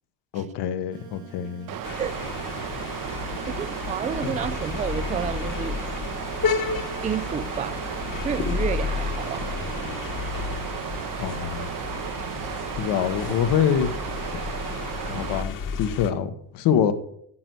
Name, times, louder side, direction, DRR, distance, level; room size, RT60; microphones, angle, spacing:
voice 1, 0.3-1.7 4.2-4.3 11.2-11.7 12.8-13.9 15.1-16.9, left 8 dB, 70° left, 1.3 m, -25 dB
sound 1, 0.9-9.9, right 10 dB, 80° right, 2.2 m, -49 dB
Water, 1.7-15.4, right 10 dB, 50° right, 0.9 m, -34 dB
sound 2, 1.8-16.1, left 6 dB, 45° left, 1.5 m, -32 dB
voice 2, 3.5-5.8 7.0-7.8 8.2-9.5 12.4-12.6, right 8 dB, 20° right, 0.4 m, -30 dB
10.0 x 8.0 x 6.2 m
supercardioid pair, 95°, 44 cm